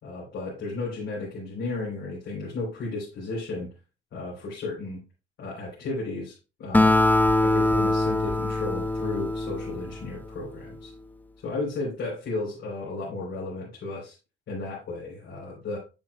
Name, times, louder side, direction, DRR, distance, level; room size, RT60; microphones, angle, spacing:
voice 1, 0.0-3.7 4.1-5.0 5.4-7.0 7.4-10.9 11.4-14.2 14.5-15.8, left 3 dB, 70° left, -5 dB, 3.8 m, -34 dB
Acoustic guitar, 6.7-10.3, left 2 dB, 10° left, 0.6 m, -23 dB
8.9 x 7.5 x 2.3 m, 0.31 s
cardioid pair, 90°, 20 cm